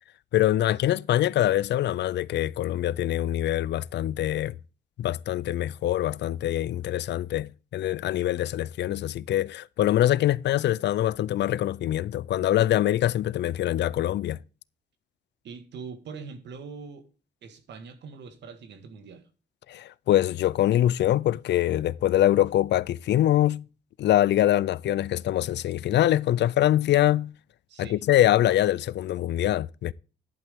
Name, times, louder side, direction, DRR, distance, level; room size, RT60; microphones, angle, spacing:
voice 1, 0.3-4.5 5.0-14.4 19.7-23.6 24.0-27.3 27.8-29.9, left 13 dB, 80° left, 0.5 m, -24 dB
voice 2, 15.4-17.0 17.4-19.3 27.7-28.0, right 5 dB, 90° right, 1.8 m, -42 dB
11.0 x 8.7 x 3.6 m
wide cardioid pair, 145°, 18 cm